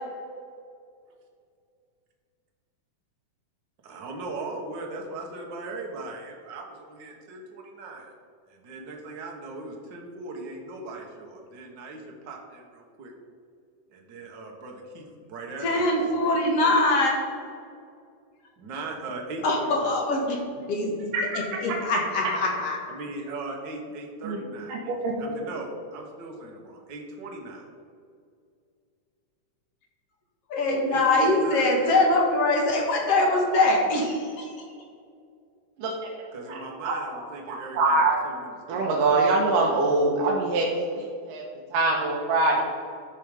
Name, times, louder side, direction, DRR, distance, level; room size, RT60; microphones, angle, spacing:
voice 1, 3.8-8.1 8.5-13.1 13.9-17.0 18.6-20.0 22.9-24.9 25.2-27.6 30.7-32.0 36.3-38.8, right 2 dB, 60° right, 0 dB, 1.1 m, -39 dB
voice 2, 15.6-17.2 19.4-20.4 20.7-21.1 21.6-22.8 30.5-34.5, left 2 dB, 55° left, 0 dB, 2.1 m, -23 dB
voice 3, 24.7-25.3 35.8-35.9 36.5-37.2 37.5-38.2 38.7-41.4 41.7-42.6, right 2 dB, 80° right, -2 dB, 2.6 m, -24 dB
13.0 x 4.7 x 5.1 m, 2.3 s
omnidirectional pair, 3.8 m